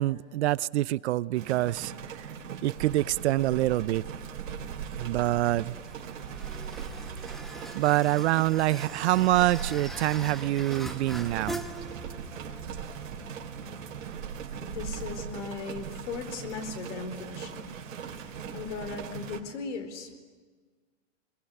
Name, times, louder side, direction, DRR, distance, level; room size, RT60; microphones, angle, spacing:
voice 1, 0.0-2.3 2.6-4.0 5.0-5.8 7.7-11.6, right 15 dB, 60° right, 20 dB, 0.7 m, -26 dB
sound 1, 1.3-19.4, right 7 dB, 90° right, 3.7 m, -39 dB
sound 2, 5.7-18.2, right 1 dB, ahead, 1.1 m, -44 dB
voice 2, 14.6-17.7 18.1-18.2 18.5-20.1, left 5 dB, 65° left, 9 dB, 4.4 m, -38 dB
23.0 x 22.0 x 10.0 m, 1.5 s
hypercardioid pair, 145°, 38 cm